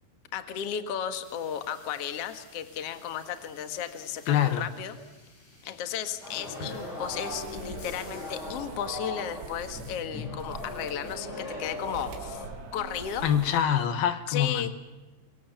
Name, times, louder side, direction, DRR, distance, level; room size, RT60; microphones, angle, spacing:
voice 1, 0.3-4.9 5.7-12.4 12.7-13.3 14.3-14.7, left 9 dB, 85° left, 8 dB, 1.3 m, -34 dB
sound 1, 1.2-9.0, left 1 dB, 45° left, 9.5 m, -51 dB
voice 2, 4.3-4.7 13.2-14.7, left 9 dB, 65° left, 10 dB, 2.8 m, -25 dB
sound 2, 6.2-12.5, left 2 dB, 25° left, 7.7 m, -39 dB
sound 3, 7.0-13.8, right 6 dB, 85° right, 4.8 m, -44 dB
26.0 x 23.0 x 7.2 m, 1.2 s
omnidirectional pair, 5.5 m